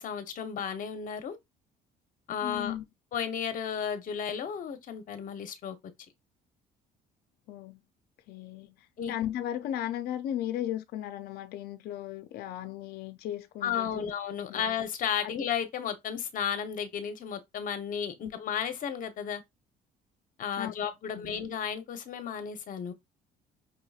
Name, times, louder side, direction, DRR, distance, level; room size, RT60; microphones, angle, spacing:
voice 1, 0.0-1.4 2.3-2.7 3.1-5.8 9.0-9.1 13.6-19.4 20.4-22.9, left 8 dB, 50° left, 0.9 m, -33 dB
voice 2, 2.4-2.8 7.5-7.8 8.3-14.1 14.5-14.7 15.2-15.3 18.2-18.3 20.6-20.7 21.1-21.3, left 11 dB, 70° left, 0.5 m, -36 dB
5.3 x 2.9 x 2.3 m
cardioid pair, 110°, 17 cm